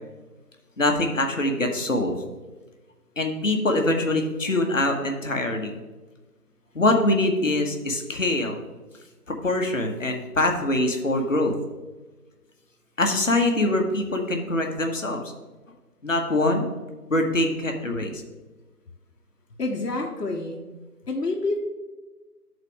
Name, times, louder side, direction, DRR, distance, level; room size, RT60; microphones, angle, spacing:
voice 1, 0.8-2.2 3.2-5.8 6.7-8.6 9.3-11.5 13.0-15.2 16.0-16.7 17.1-18.2, left 1 dB, 55° left, 3 dB, 1.0 m, -24 dB
voice 2, 19.6-20.6 21.1-21.6, left 2 dB, 80° left, -1 dB, 1.0 m, -27 dB
11.0 x 4.0 x 3.4 m, 1.2 s
figure-of-eight pair, 170°, 47 cm